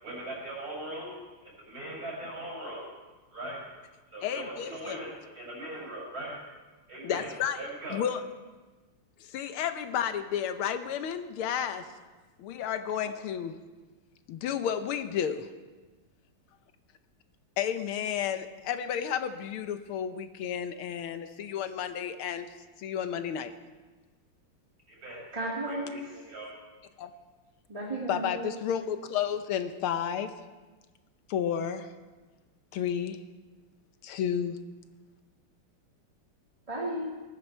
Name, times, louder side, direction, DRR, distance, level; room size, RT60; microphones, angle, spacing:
voice 1, 0.0-1.1 1.4-2.9 3.3-3.6 4.1-6.4 6.9-8.0 24.9-25.2 25.6-26.5, right 1 dB, 40° right, -4 dB, 6.1 m, -40 dB
voice 2, 4.2-5.0 7.0-8.2 9.2-11.9 12.4-13.6 14.3-15.5 17.6-23.5 27.0-27.1 28.1-30.3 31.3-31.9 32.7-33.2 34.0-34.6, left 9 dB, 80° left, 9 dB, 1.6 m, -32 dB
voice 3, 25.3-26.0 27.7-28.4 36.7-37.1, right 1 dB, 15° right, -4 dB, 1.8 m, -34 dB
19.5 x 14.0 x 4.4 m, 1.3 s
omnidirectional pair, 2.4 m